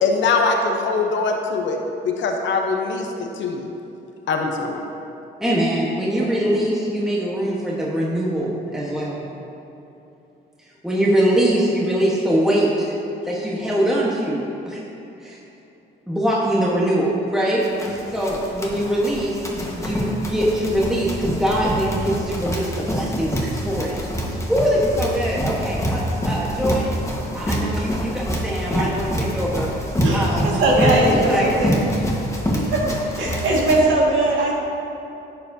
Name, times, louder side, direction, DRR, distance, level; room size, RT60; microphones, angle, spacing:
voice 1, 0.0-1.8 2.0-3.7 4.3-4.8, left 4 dB, 70° left, 3 dB, 0.9 m, -22 dB
voice 2, 5.4-9.2 10.8-12.9 13.2-14.8 15.2-15.4 16.1-19.4 19.7-23.9 24.2-27.0 27.3-29.7 30.1-31.8 32.6-32.7, equal, ahead, -5 dB, 1.3 m, -23 dB
Run, 17.6-33.8, equal, 15° left, 1.4 m, -25 dB
voice 3, 30.0-31.8 32.7-32.8 33.2-34.5, right 1 dB, 75° right, -3 dB, 2.0 m, -19 dB
11.5 x 7.7 x 2.8 m, 2.9 s
cardioid pair, 90°, 20 cm